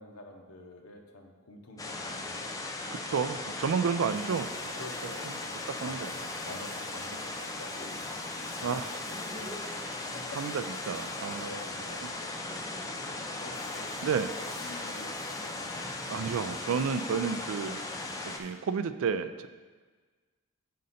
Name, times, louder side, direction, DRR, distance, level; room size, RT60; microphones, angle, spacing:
voice 1, 0.0-2.4 4.7-10.8 11.3-12.6 13.3-14.0 14.4-15.9, left 1 dB, 75° left, 2 dB, 0.9 m, -48 dB
Laughter, 1.7-4.2 5.5-7.9 8.8-11.3 12.1-14.6 15.4-17.4, equal, 10° right, 1.9 m, -51 dB
sound 1, 1.8-18.4, left 2 dB, 15° left, 0.4 m, -38 dB
voice 2, 2.9-4.8 5.8-6.1 8.6-8.9 10.4-11.5 13.2-13.3 14.0-14.3 16.1-17.8 18.3-19.5, right 6 dB, 60° right, 12 dB, 0.3 m, -31 dB
sound 2, 4.1-18.5, left 1 dB, 45° left, 2.0 m, -55 dB
7.6 x 5.2 x 4.1 m, 1.4 s
head